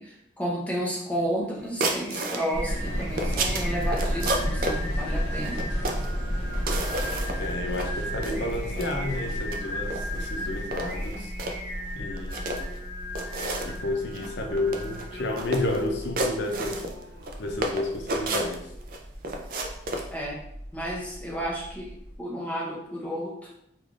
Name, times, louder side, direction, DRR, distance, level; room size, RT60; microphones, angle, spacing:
voice 1, 0.0-5.7 20.1-20.4 20.7-23.5, equal, 10° left, -4 dB, 0.6 m, -32 dB
Singing, 1.4-17.6, equal, 85° right, 1.1 m, -39 dB
sound 1, 1.8-2.4 2.9-4.8 5.4-6.1 6.5-7.5 7.7-7.9 8.2-8.9 9.4-9.6 9.9-10.3 10.7-11.6 12.2-12.8 13.1-13.8 14.1-14.3 14.6-15.0 15.4-15.8 16.2-17.3 17.6-19.0 19.2-20.1, right 2 dB, 50° right, 0.3 m, -30 dB
sound 2, 2.5-22.1, equal, 50° left, 1.1 m, -34 dB
voice 2, 7.4-11.3 12.0-12.7 13.6-16.9 17.4-18.7, left 2 dB, 85° left, 3 dB, 0.5 m, -31 dB
3.3 x 2.3 x 2.4 m, 0.77 s
head